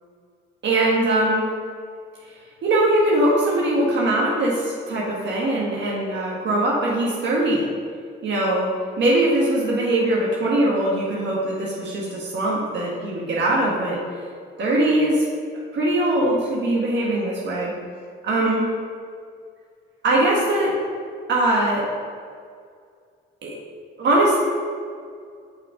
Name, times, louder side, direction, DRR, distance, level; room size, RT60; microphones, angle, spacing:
voice 1, 0.6-1.4 2.6-7.7 8.2-14.0 14.6-15.2 15.7-17.7 18.2-18.7 20.0-20.8 21.3-21.8 23.4-23.5 24.0-24.4, right 1 dB, 65° right, -4 dB, 1.5 m, -21 dB
5.8 x 5.0 x 5.0 m, 2.2 s
cardioid pair, 90°, 20 cm